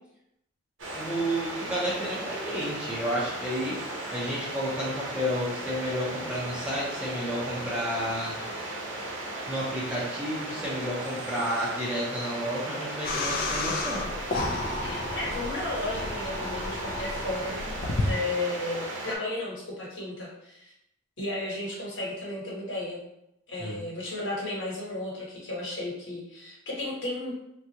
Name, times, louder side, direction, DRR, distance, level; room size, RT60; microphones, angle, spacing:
sound 1, 0.8-19.2, right 2 dB, 80° right, 0.7 m, -36 dB
voice 1, 0.9-3.8 4.1-8.4 9.5-14.0 23.6-23.8, equal, 5° right, -7 dB, 0.6 m, -31 dB
sound 2, 13.0-18.1, left 2 dB, 45° left, 0.3 m, -32 dB
voice 2, 14.8-17.7 18.0-20.7 21.2-23.0 23.5-27.3, left 2 dB, 70° left, -4 dB, 1.1 m, -34 dB
3.6 x 2.3 x 2.8 m, 0.81 s
head